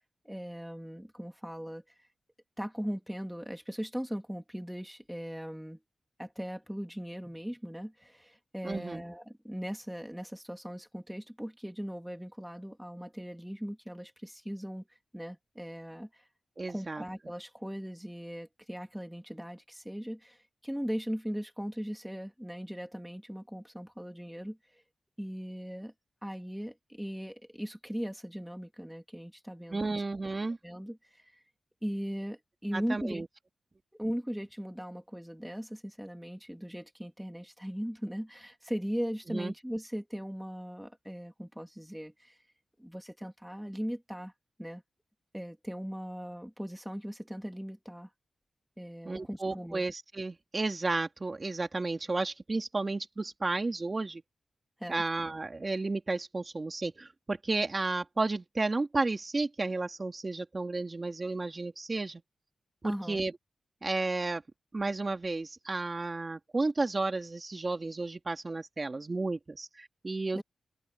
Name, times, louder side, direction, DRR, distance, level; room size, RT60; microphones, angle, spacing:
voice 1, 0.2-2.0 2.6-5.8 6.2-14.9 15.1-16.2 16.7-24.6 25.2-25.9 26.2-30.0 30.6-31.4 31.8-33.2 33.9-42.4 42.8-44.3 44.6-44.8 45.3-48.1 48.8-49.8 54.8-55.0 62.8-63.2 70.3-70.4, equal, 5° right, 3.1 m, -39 dB
voice 2, 8.6-9.0 16.6-17.0 29.7-30.6 32.7-33.3 39.3-39.5 49.0-54.2 54.9-62.2 62.8-63.3 63.8-64.4 64.7-70.4, right 3 dB, 30° right, 2.8 m, -32 dB
open air
wide cardioid pair, 115°, 0 cm